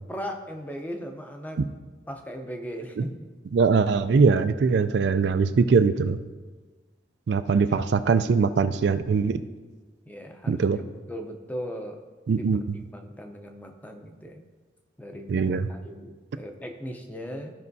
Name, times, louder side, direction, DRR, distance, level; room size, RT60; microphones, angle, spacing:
voice 1, 0.1-1.6 2.1-3.1 7.5-7.8 8.1-8.4 10.0-12.0 12.4-12.6 12.9-14.4 15.0-17.5, equal, 10° left, 4 dB, 0.6 m, -38 dB
voice 2, 3.5-6.2 7.3-9.4 10.5-10.8 12.3-12.8 15.3-15.7, right 5 dB, 65° right, 10 dB, 0.3 m, -22 dB
14.0 x 5.4 x 2.7 m, 1.4 s
head